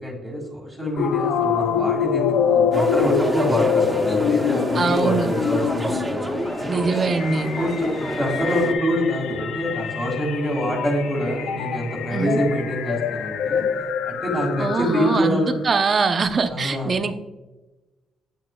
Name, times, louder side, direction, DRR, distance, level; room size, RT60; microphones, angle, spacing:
voice 1, 0.0-6.2 6.6-6.9 7.5-13.7 14.0-15.6 16.5-16.9, equal, 15° left, -3 dB, 2.1 m, -25 dB
sound 1, 1.0-15.5, left 7 dB, 80° left, 0.4 m, -25 dB
sound 2, 2.7-8.7, right 1 dB, 10° right, 0.8 m, -28 dB
voice 2, 4.7-5.3 6.7-7.5 12.1-12.4 14.6-17.1, right 4 dB, 40° right, 8 dB, 0.7 m, -22 dB
8.3 x 6.2 x 2.3 m, 1.1 s
cardioid pair, 90°, 0 cm